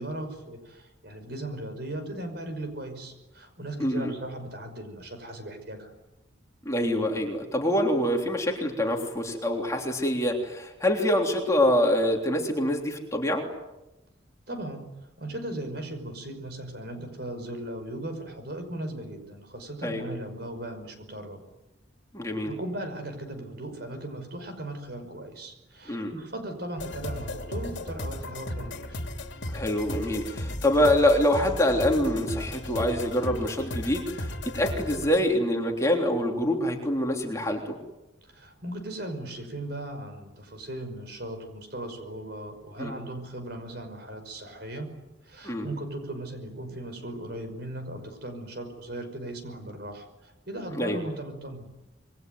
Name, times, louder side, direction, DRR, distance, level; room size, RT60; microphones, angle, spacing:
voice 1, 0.0-5.9 14.5-14.9 15.2-21.4 22.4-29.0 38.2-44.9 45.2-51.7, right 1 dB, 55° right, 7 dB, 5.7 m, -37 dB
voice 2, 3.8-4.1 6.6-13.4 19.8-20.0 22.1-22.5 25.9-26.1 29.5-37.7 42.8-42.9 45.4-45.6 50.7-51.0, left 1 dB, 15° left, 1 dB, 3.3 m, -25 dB
sound 1, 26.8-35.2, left 1 dB, 60° left, 2.9 m, -35 dB
27.0 x 23.0 x 9.4 m, 0.99 s
head